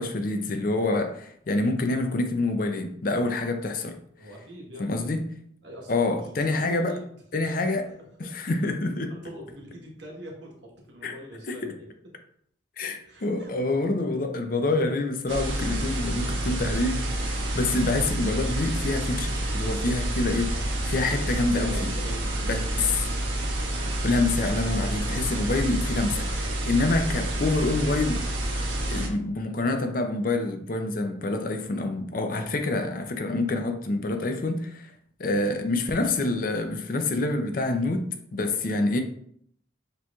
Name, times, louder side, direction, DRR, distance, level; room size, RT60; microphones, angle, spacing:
voice 1, 0.0-4.0 4.8-5.2 5.9-6.9 7.3-7.9 8.2-9.1 11.0-11.1 11.5-11.7 12.8-21.9 22.5-23.0 24.0-28.2 28.9-34.9 35.2-39.0, left 2 dB, 45° left, 0.5 m, -27 dB
voice 2, 4.2-5.2 5.6-7.8 9.2-11.8 13.0-13.5 21.6-22.6 23.8-24.0, equal, 65° right, 1.2 m, -43 dB
sound 1, 15.3-29.1, right 1 dB, 80° right, 1.1 m, -28 dB
6.7 x 3.0 x 2.3 m
head